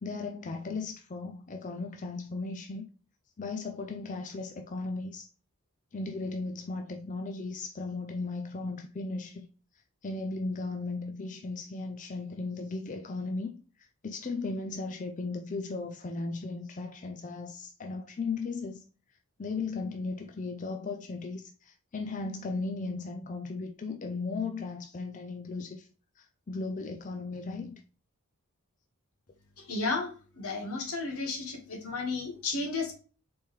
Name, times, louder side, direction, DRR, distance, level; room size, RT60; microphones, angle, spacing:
voice 1, 0.0-2.9 3.4-5.3 5.9-9.5 10.0-13.5 13.8-18.8 19.4-25.9 26.2-27.8, left 3 dB, 35° left, 0.4 m, -36 dB
voice 2, 29.6-32.9, left 3 dB, 80° left, 1.5 m, -33 dB
4.3 x 3.7 x 3.1 m
head